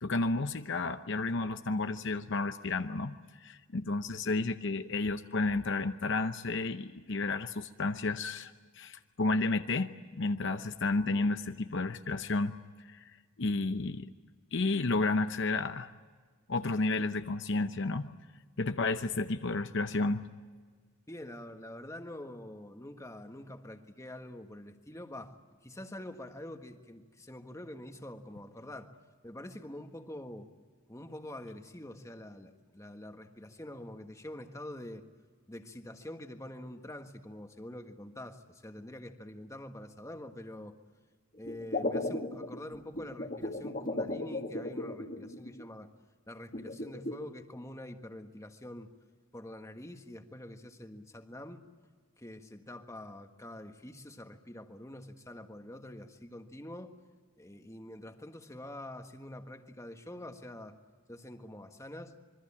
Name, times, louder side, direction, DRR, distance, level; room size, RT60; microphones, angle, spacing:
voice 1, 0.0-12.6 12.9-13.1 13.4-14.1 14.5-15.9 16.5-18.1 18.6-20.3, left 3 dB, 55° left, 9 dB, 0.8 m, -32 dB
voice 2, 21.1-28.9 29.2-30.5 30.9-35.0 35.5-40.8 41.3-45.9 46.3-48.9 49.3-51.7 52.2-56.9 57.4-60.8 61.1-62.2, left 1 dB, 15° left, 6 dB, 1.5 m, -46 dB
sound 1, 41.5-45.6 46.5-47.2, left 2 dB, 40° left, 2.1 m, -36 dB
26.5 x 22.5 x 8.6 m, 1.5 s
head